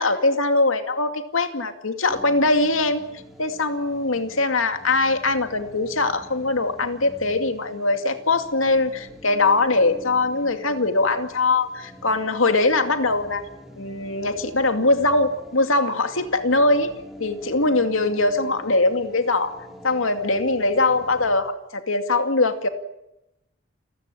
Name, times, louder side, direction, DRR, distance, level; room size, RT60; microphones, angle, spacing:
voice 1, 0.0-3.0 3.4-13.4 13.8-16.9 17.2-19.5 19.8-22.7, left 2 dB, 85° left, 7 dB, 2.5 m, -21 dB
sound 1, 2.1-21.4, left 1 dB, ahead, 4.3 m, -45 dB
29.0 x 15.0 x 10.0 m, 0.90 s
head